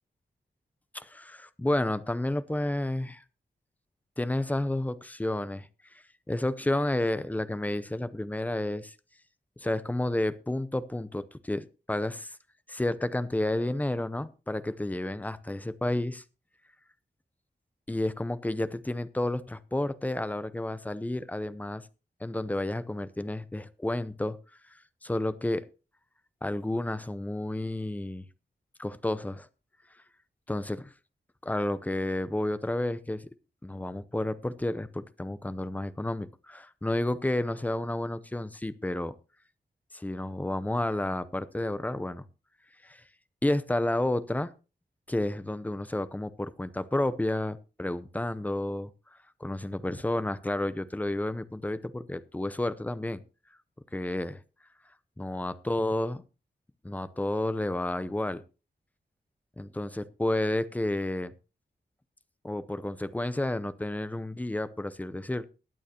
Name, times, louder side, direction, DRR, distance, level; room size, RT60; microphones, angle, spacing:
voice 1, 0.9-3.2 4.2-5.7 6.3-8.9 9.6-12.4 12.7-16.2 17.9-21.9 22.2-24.4 25.0-25.7 26.4-28.2 28.8-29.5 30.5-30.9 31.4-33.3 33.6-39.1 39.9-42.2 42.8-43.0 43.4-44.5 45.1-48.9 49.4-53.2 53.9-54.4 55.2-56.2 56.8-58.4 59.6-61.3 62.4-65.4, left 1 dB, 10° left, 14 dB, 0.6 m, -31 dB
21.0 x 9.0 x 2.9 m, 0.32 s
wide cardioid pair, 170°, 18 cm